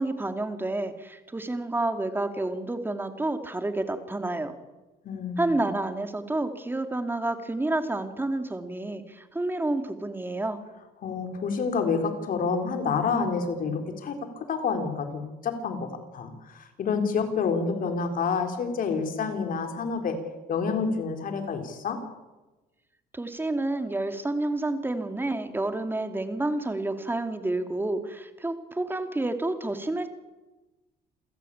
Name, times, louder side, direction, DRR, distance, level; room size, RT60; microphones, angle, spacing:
voice 1, 0.0-4.5 5.4-10.6 23.1-30.1, right 2 dB, 10° right, 7 dB, 2.5 m, -29 dB
voice 2, 5.0-5.7 11.0-15.9 16.1-20.2 20.5-22.0, left 5 dB, 55° left, 5 dB, 4.1 m, -28 dB
28.0 x 15.5 x 8.7 m, 1.2 s
cardioid pair, 110°, 17 cm